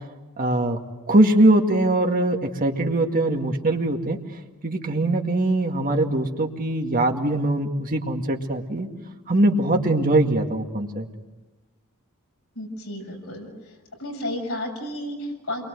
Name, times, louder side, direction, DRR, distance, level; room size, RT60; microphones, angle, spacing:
voice 1, 0.4-0.8 1.1-4.2 4.6-8.9 9.3-11.1, right 1 dB, 40° right, 2 dB, 2.2 m, -21 dB
voice 2, 12.6-13.5 14.0-15.6, left 1 dB, 70° left, 1 dB, 6.9 m, -32 dB
28.5 x 23.5 x 8.0 m, 1.1 s
head